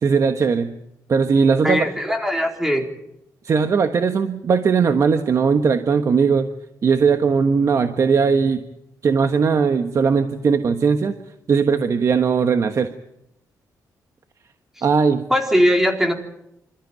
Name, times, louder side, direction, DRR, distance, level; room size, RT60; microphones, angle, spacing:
voice 1, 0.0-0.7 1.1-1.9 3.4-6.5 6.8-8.6 9.0-11.1 11.5-12.9 14.8-15.2, right 5 dB, 50° right, 7 dB, 1.3 m, -18 dB
voice 2, 1.6-2.8 15.3-16.1, equal, 5° right, 3 dB, 3.9 m, -19 dB
27.0 x 14.0 x 9.3 m, 0.84 s
cardioid pair, 110°, 7 cm